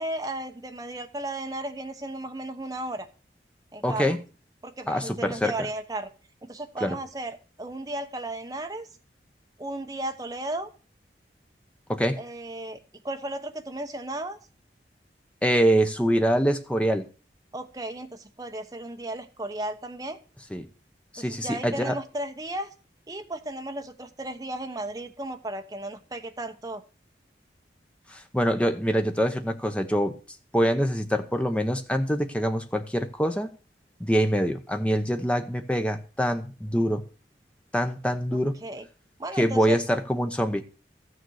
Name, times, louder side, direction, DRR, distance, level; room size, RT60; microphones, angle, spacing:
voice 1, 0.0-3.1 3.7-4.2 4.6-6.1 6.4-8.9 9.6-10.7 12.2-12.8 13.0-14.4 17.5-20.2 21.2-22.7 23.1-26.8 38.3-38.8 39.2-39.8, right 1 dB, 20° right, 1.0 m, -35 dB
voice 2, 3.8-4.2 4.9-5.5 6.8-7.0 11.9-12.2 15.4-17.1 20.5-20.7 21.1-22.0 28.1-30.2 30.5-33.5 34.0-37.0 37.7-38.6 39.4-40.6, equal, 5° left, 0.9 m, -25 dB
14.0 x 6.7 x 6.3 m
head